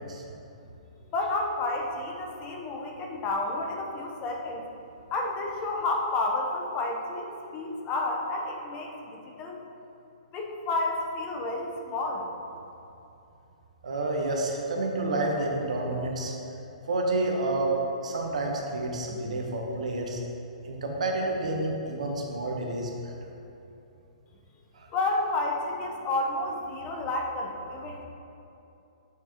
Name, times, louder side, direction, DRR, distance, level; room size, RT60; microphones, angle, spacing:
voice 1, 1.1-4.6 5.1-9.6 10.3-12.3 24.9-28.0, left 2 dB, 30° left, 1 dB, 0.7 m, -30 dB
voice 2, 13.8-16.3 16.9-17.7 18.0-20.2 20.6-23.1 24.7-24.9, right 2 dB, 70° right, 0 dB, 1.0 m, -29 dB
8.0 x 4.6 x 2.9 m, 2.8 s
hypercardioid pair, 125°, 4 cm